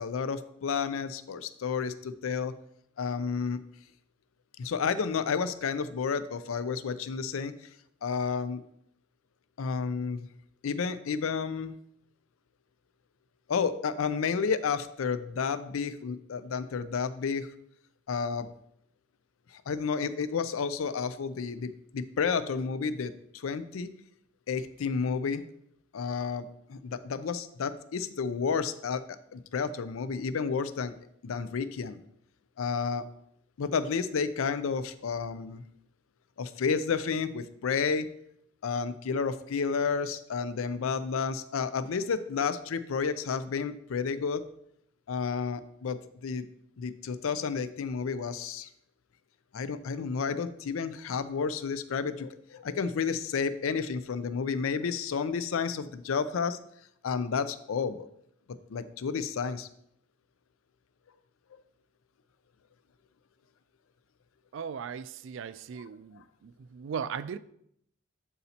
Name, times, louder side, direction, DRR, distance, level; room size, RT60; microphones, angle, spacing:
voice 1, 0.0-2.5 3.0-3.6 4.6-7.5 8.0-8.6 9.6-10.3 10.6-11.7 13.5-17.5 18.1-18.5 19.5-23.9 24.5-25.4 25.9-30.9 31.2-32.0 32.6-33.0 33.6-35.6 36.4-38.1 38.6-44.4 45.1-46.4 46.8-48.7 49.5-56.6 57.0-58.1 58.7-59.7, left 5 dB, 85° left, 0.4 m, -31 dB
voice 2, 64.5-67.4, right 7 dB, 65° right, 0.3 m, -38 dB
11.0 x 4.1 x 2.8 m
head